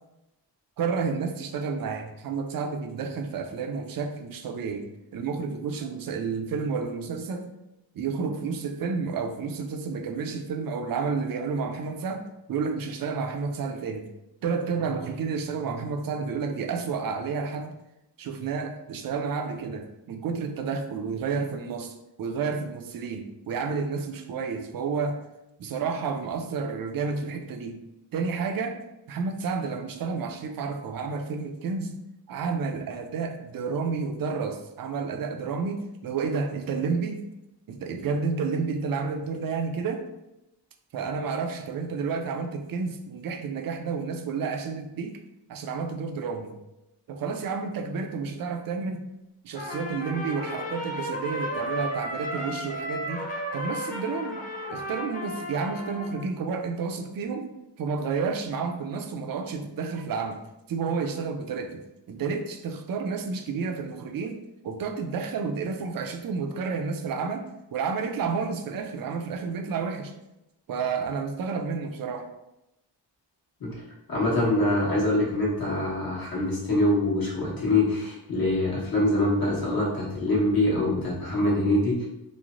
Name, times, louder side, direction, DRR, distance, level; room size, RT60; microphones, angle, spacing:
voice 1, 0.8-4.9 5.1-7.5 7.9-12.2 12.5-14.1 14.4-17.7 18.2-25.2 25.6-27.8 28.1-28.8 29.1-31.9 32.3-37.2 37.7-40.0 40.9-45.2 45.5-46.5 47.1-49.0 49.4-53.3 53.5-54.4 54.7-60.4 60.7-61.8 62.1-64.4 64.6-70.1 70.7-72.3, right 5 dB, 50° right, 4 dB, 0.5 m, -30 dB
Trumpet, 49.5-56.3, equal, 20° left, 0.7 m, -34 dB
voice 2, 74.1-82.0, left 1 dB, 55° left, -6 dB, 1.2 m, -24 dB
3.1 x 2.0 x 2.5 m, 0.91 s
cardioid pair, 65°, 44 cm